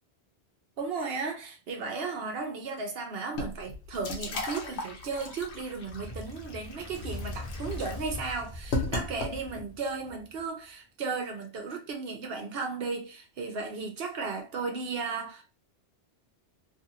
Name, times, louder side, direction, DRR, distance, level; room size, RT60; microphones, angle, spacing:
voice 1, 0.8-15.4, right 4 dB, 65° right, 0.9 m, -35 dB
sound 1, 3.3-9.7, left 3 dB, 85° left, 1.0 m, -36 dB
Fire, 5.8-10.4, left 2 dB, 40° left, 0.7 m, -41 dB
2.7 x 2.5 x 2.7 m
omnidirectional pair, 1.1 m